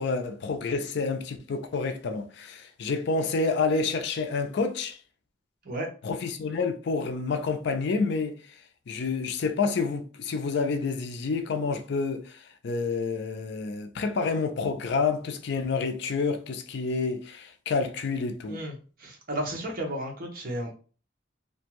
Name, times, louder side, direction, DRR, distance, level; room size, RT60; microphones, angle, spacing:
voice 1, 0.0-5.0 6.0-8.6 8.9-18.6, left 4 dB, 65° left, 0.4 m, -29 dB
voice 2, 18.5-20.7, right 1 dB, 50° right, 0.8 m, -33 dB
2.5 x 2.2 x 2.9 m
head